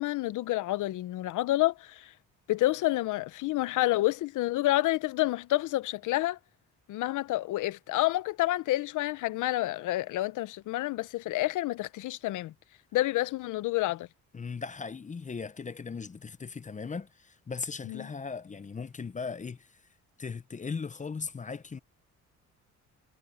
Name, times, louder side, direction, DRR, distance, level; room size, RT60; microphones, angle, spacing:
voice 1, 0.0-2.1 2.5-6.4 6.9-12.5 12.9-14.1 17.9-18.1, left 16 dB, 80° left, 0.8 m, -29 dB
voice 2, 14.3-19.8 20.2-21.8, left 5 dB, 25° left, 0.7 m, -38 dB
cardioid pair, 90°, 30 cm